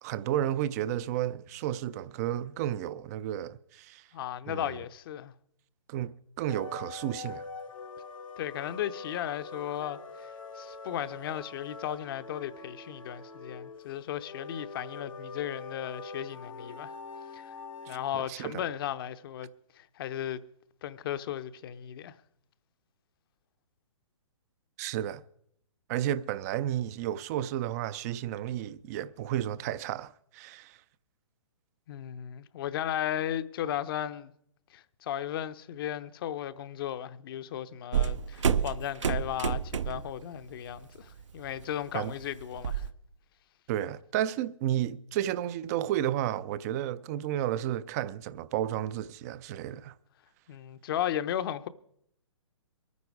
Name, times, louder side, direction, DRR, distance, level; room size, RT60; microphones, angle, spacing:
voice 1, 0.0-4.0 4.5-4.8 5.9-7.5 17.9-18.6 24.8-25.2 25.9-30.8 41.9-42.1 43.7-49.9, right 12 dB, 30° right, 0.5 m, -32 dB
voice 2, 4.1-5.3 8.4-16.9 17.3-17.5 17.9-19.5 19.8-20.4 20.8-22.1 31.9-34.3 34.7-42.9 50.5-51.7, left 11 dB, 45° left, 0.8 m, -35 dB
sound 1, 6.5-18.1, left 4 dB, 85° left, 1.6 m, -44 dB
sound 2, 37.9-40.2 40.5-40.8 41.2-42.9, right 7 dB, 70° right, 0.7 m, -29 dB
22.5 x 9.6 x 4.8 m
hypercardioid pair, 135°, 17 cm